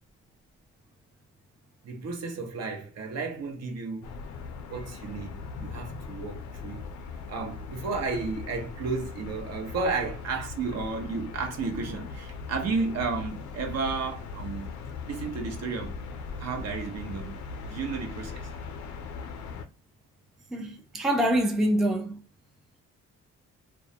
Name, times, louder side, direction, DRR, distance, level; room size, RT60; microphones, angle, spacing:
voice 1, 1.8-4.2 4.7-6.9 7.3-14.7 15.1-16.0 16.4-17.4 17.7-18.5, right 4 dB, 60° right, 0.7 m, -33 dB
sound 1, 4.0-19.7, left 5 dB, 70° left, 0.5 m, -39 dB
voice 2, 20.5-22.2, right 1 dB, ahead, 0.4 m, -25 dB
2.2 x 2.0 x 2.7 m
cardioid pair, 90°, 30 cm